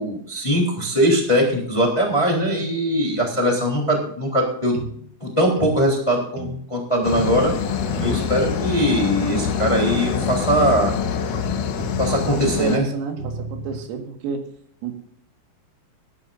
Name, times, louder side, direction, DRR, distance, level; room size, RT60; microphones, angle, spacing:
voice 1, 0.0-4.7 5.2-7.5 8.0-10.9 12.0-12.9, equal, 10° left, -1 dB, 2.4 m, -21 dB
sound 1, 4.7-5.0 5.6-5.8 6.4-6.6 7.1-7.4 8.0-8.2 8.8-9.0 9.6-9.9 10.6-10.9 11.8-12.4 13.2-13.8, right 2 dB, 60° right, 3.0 m, -33 dB
sound 2, 7.0-12.8, left 7 dB, 85° left, 1.8 m, -25 dB
voice 2, 12.3-14.5 14.8-15.0, right 6 dB, 85° right, 4 dB, 4.5 m, -29 dB
21.0 x 11.0 x 2.6 m, 0.64 s
omnidirectional pair, 5.8 m